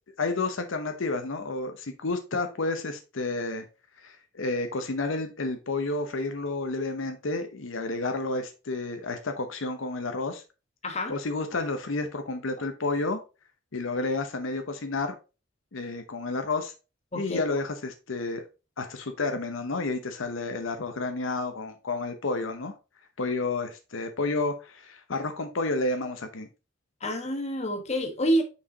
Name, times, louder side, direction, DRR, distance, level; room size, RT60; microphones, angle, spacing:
voice 1, 0.2-3.7 4.0-10.4 11.1-13.2 13.7-15.1 15.7-16.7 17.1-18.4 18.8-22.7 23.2-26.5, left 3 dB, 75° left, 0.8 m, -30 dB
voice 2, 10.8-11.1 17.1-17.4 27.0-28.4, equal, 35° left, 1.3 m, -27 dB
5.8 x 4.7 x 3.9 m
head